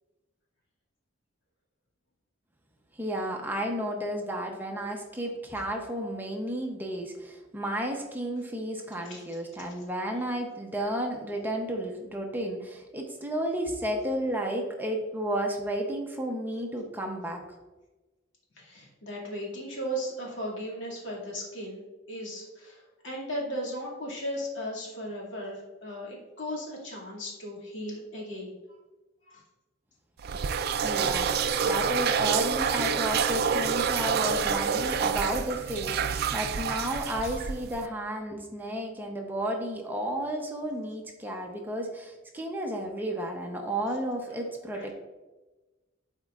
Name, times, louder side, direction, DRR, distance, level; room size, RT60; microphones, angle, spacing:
voice 1, 2.9-17.4 30.8-31.3 31.6-44.9, right 1 dB, 10° right, 1 dB, 0.7 m, -32 dB
voice 2, 9.0-9.4 18.6-28.5 29.3-29.4 37.2-37.3 44.7-44.9, equal, 70° left, -4 dB, 2.2 m, -37 dB
sound 1, 30.2-37.9, right 6 dB, 50° right, 0.4 m, -27 dB
12.0 x 4.4 x 2.4 m, 1.2 s
head